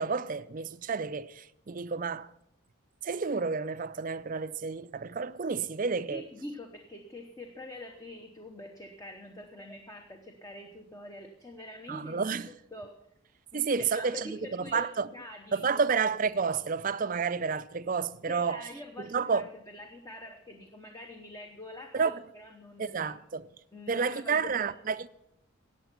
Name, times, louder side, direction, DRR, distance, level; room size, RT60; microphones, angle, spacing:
voice 1, 0.0-2.3 3.0-6.3 11.9-12.5 13.5-15.1 15.5-18.7 19.0-19.5 21.9-22.2 22.8-23.5 23.9-25.1, right 5 dB, 40° right, 0.4 m, -30 dB
voice 2, 6.1-12.3 12.7-12.9 13.5-15.8 18.3-23.2 23.7-24.7, left 1 dB, 15° left, 0.9 m, -45 dB
15.0 x 8.9 x 5.9 m
head